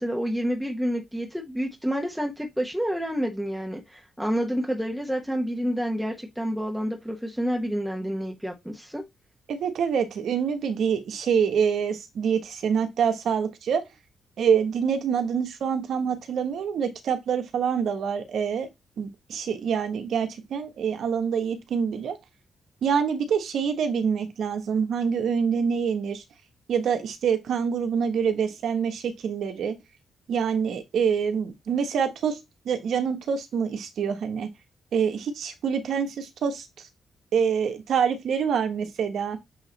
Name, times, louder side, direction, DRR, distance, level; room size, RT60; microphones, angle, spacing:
voice 1, 0.0-9.0, equal, 5° right, 1.3 m, -29 dB
voice 2, 9.5-13.8 14.4-18.7 19.0-22.2 22.8-26.2 26.7-29.8 30.3-32.4 32.6-34.5 34.9-36.7 37.3-39.4, right 7 dB, 80° right, 1.2 m, -26 dB
7.6 x 3.0 x 4.0 m
cardioid pair, 90°, 0 cm